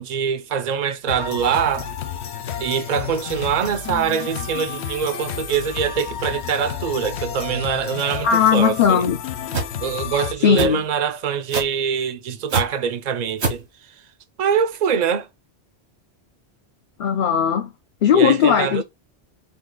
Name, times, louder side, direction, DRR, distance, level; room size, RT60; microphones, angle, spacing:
voice 1, 0.0-1.9 2.6-9.0 9.8-13.6 14.4-15.3 18.1-18.8, right 7 dB, 50° right, 0.6 m, -24 dB
sound 1, 1.1-10.3, left 8 dB, 80° left, 1.0 m, -31 dB
voice 2, 8.2-9.2 10.4-10.8 17.0-17.7 18.0-18.8, left 8 dB, 60° left, 0.6 m, -17 dB
sound 2, 9.5-9.7 10.6-10.8 11.5-11.8 12.5-12.6 13.4-13.6, right 3 dB, 80° right, 1.6 m, -22 dB
5.3 x 2.4 x 3.7 m
omnidirectional pair, 1.1 m